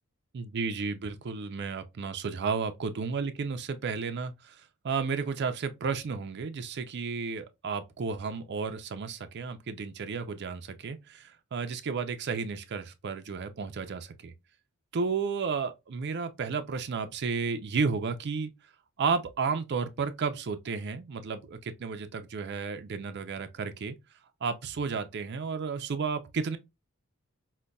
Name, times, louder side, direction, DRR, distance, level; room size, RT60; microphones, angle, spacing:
voice 1, 0.3-14.3 14.9-18.5 19.0-23.9 24.4-26.6, right 5 dB, 50° right, 0.4 m, -32 dB
5.1 x 2.2 x 2.2 m
head